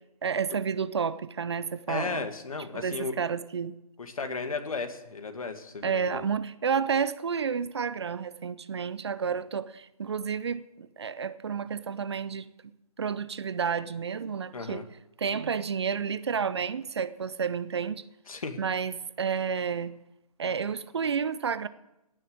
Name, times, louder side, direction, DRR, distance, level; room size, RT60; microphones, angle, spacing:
voice 1, 0.2-2.3 2.7-3.7 5.8-12.5 13.0-14.8 15.2-18.0 18.6-19.9 20.4-21.7, right 6 dB, 45° right, 15 dB, 0.6 m, -30 dB
voice 2, 1.9-3.1 4.0-6.3 9.2-9.3 14.5-14.9 18.3-18.6, left 4 dB, 65° left, 7 dB, 2.0 m, -35 dB
18.0 x 6.6 x 8.7 m, 0.91 s
figure-of-eight pair, 155°, 20 cm